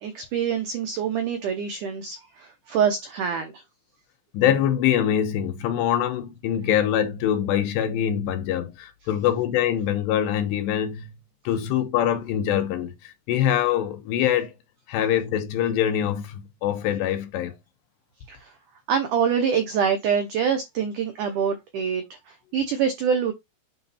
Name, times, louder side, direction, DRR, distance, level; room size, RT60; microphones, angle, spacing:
voice 1, 0.0-3.6 18.3-18.5 18.9-23.3, right 7 dB, 80° right, 1.8 m, -25 dB
voice 2, 4.3-11.1 11.4-14.5 14.9-17.5, left 10 dB, 80° left, 3.2 m, -24 dB
9.0 x 3.9 x 4.2 m
omnidirectional pair, 5.0 m